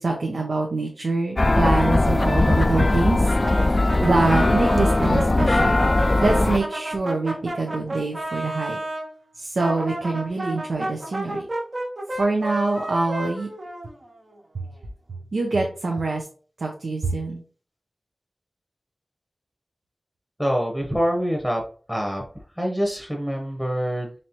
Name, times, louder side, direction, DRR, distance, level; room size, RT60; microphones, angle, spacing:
voice 1, 0.0-5.8 6.2-8.8 9.3-11.4 12.2-13.5 15.3-16.3 16.6-17.4, right 3 dB, 85° right, 0 dB, 0.6 m, -25 dB
sound 1, 1.4-6.6, left 2 dB, 40° left, 0.3 m, -19 dB
Brass instrument, 3.4-9.1 9.6-14.4, right 1 dB, 55° right, 0.9 m, -31 dB
voice 2, 20.4-21.6 21.9-22.2 22.5-24.1, equal, 5° right, 1 dB, 0.9 m, -25 dB
4.1 x 3.2 x 2.9 m, 0.41 s
cardioid pair, 45°, 0 cm